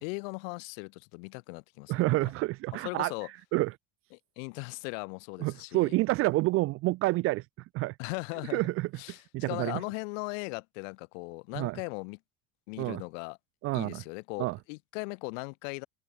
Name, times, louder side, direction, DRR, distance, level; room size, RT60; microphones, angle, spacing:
voice 1, 0.0-2.3 2.7-3.3 4.4-6.0 8.0-8.6 9.0-12.2 12.7-13.4 13.7-15.9, left 34 dB, 70° left, 3.5 m, -38 dB
voice 2, 1.9-3.1 3.5-3.7 5.4-7.4 7.7-7.9 8.5-8.9 9.3-9.8 11.5-11.8 12.8-13.0 13.6-14.0 14.4-14.6, right 20 dB, 35° right, 0.4 m, -28 dB
cardioid pair, 160°, 39 cm